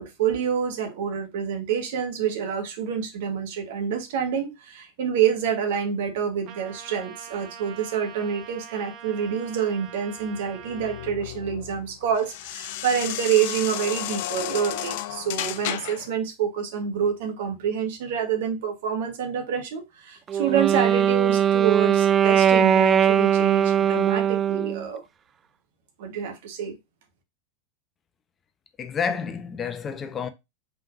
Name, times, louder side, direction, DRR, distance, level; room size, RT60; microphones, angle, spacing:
voice 1, 0.0-25.0 26.0-26.7, right 8 dB, 65° right, 1.3 m, -27 dB
Trumpet, 6.4-11.1, right 8 dB, 50° right, 1.0 m, -44 dB
sound 1, 10.3-16.1, left 13 dB, 60° left, 0.4 m, -33 dB
Wind instrument woodwind instrument, 20.3-24.8, right 9 dB, 30° right, 0.3 m, -20 dB
voice 2, 28.8-30.3, left 6 dB, 30° left, 0.7 m, -29 dB
4.7 x 3.8 x 2.6 m
hypercardioid pair, 95°, 0 cm